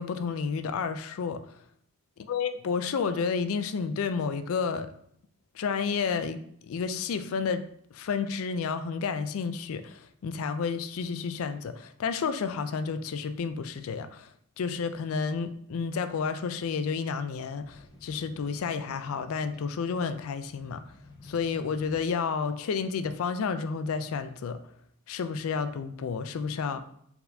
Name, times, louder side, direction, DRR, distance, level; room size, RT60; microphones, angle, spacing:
voice 1, 0.0-1.6 2.3-4.9 5.5-7.6 7.9-14.3 14.6-20.8 21.2-24.6 25.1-26.8, left 5 dB, 70° left, 10 dB, 0.4 m, -31 dB
sound 1, 17.6-22.4 23.1-23.2, left 2 dB, 15° left, 0.6 m, -52 dB
4.2 x 4.1 x 2.7 m, 0.69 s
head